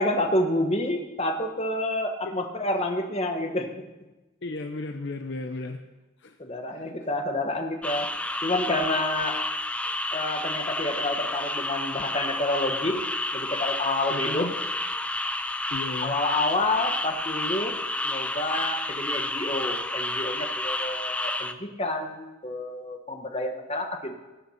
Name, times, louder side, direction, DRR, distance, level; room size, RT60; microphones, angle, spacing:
voice 1, 0.0-3.8 6.4-8.1 8.4-9.4 10.1-13.0 13.3-14.5 16.0-17.8 18.0-24.2, left 1 dB, 30° left, 4 dB, 1.2 m, -28 dB
voice 2, 4.4-5.8 6.2-6.4 6.7-6.8 14.1-14.5 15.7-16.1, left 2 dB, 55° left, 6 dB, 0.7 m, -34 dB
sound 1, 7.8-21.5, left 2 dB, 5° left, 0.4 m, -30 dB
19.0 x 6.9 x 5.8 m, 1.1 s
head